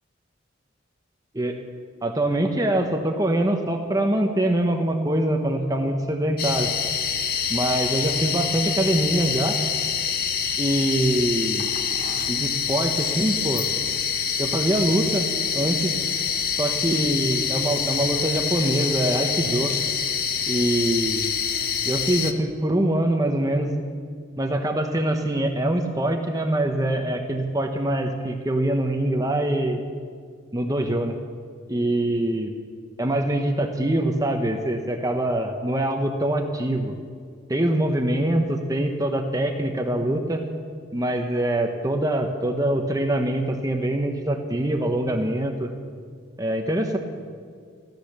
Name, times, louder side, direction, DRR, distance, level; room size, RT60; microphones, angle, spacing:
voice 1, 2.0-6.7 7.5-9.6 10.6-11.7 12.3-13.7 14.4-15.3 15.5-15.9 16.6-19.7 20.4-21.3 21.8-23.7 24.4-29.8 30.5-31.2 31.7-32.5 33.0-36.9 37.5-40.4 40.9-45.7 46.4-47.0, right 1 dB, 20° right, 4 dB, 0.9 m, -24 dB
sound 1, 6.4-22.3, left 7 dB, 45° left, 1.0 m, -26 dB
15.5 x 13.5 x 6.7 m, 2.1 s
head